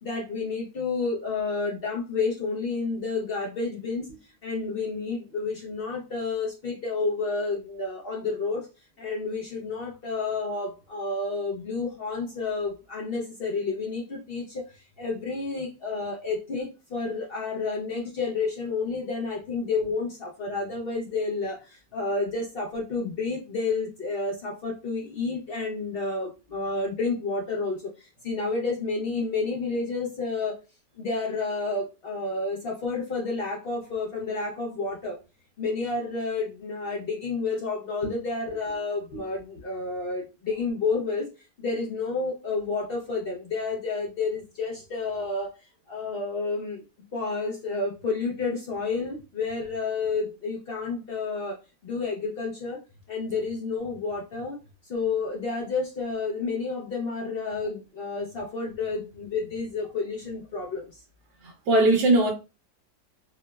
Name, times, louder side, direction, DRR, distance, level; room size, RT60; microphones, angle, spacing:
voice 1, 0.0-8.7 9.0-30.6 31.0-35.2 35.6-41.3 41.6-45.5 45.9-46.8 47.1-52.8 53.1-54.6 54.9-61.0, left 4 dB, 70° left, 0.5 m, -30 dB
voice 2, 61.4-62.3, right 2 dB, 80° right, 1.4 m, -20 dB
4.5 x 2.0 x 2.2 m
omnidirectional pair, 1.8 m